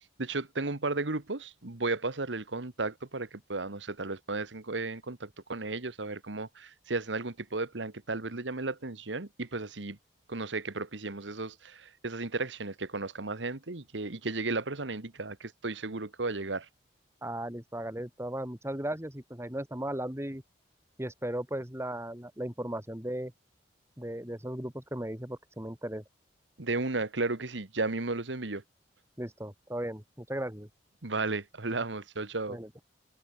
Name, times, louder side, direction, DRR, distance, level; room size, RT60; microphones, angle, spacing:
voice 1, 0.0-10.0 10.3-16.7 26.6-28.6 31.0-32.6, right 3 dB, 85° right, 1.7 m, -34 dB
voice 2, 17.2-20.4 21.0-23.3 24.0-26.0 29.2-30.7 32.5-32.8, right 1 dB, 15° right, 4.3 m, -36 dB
head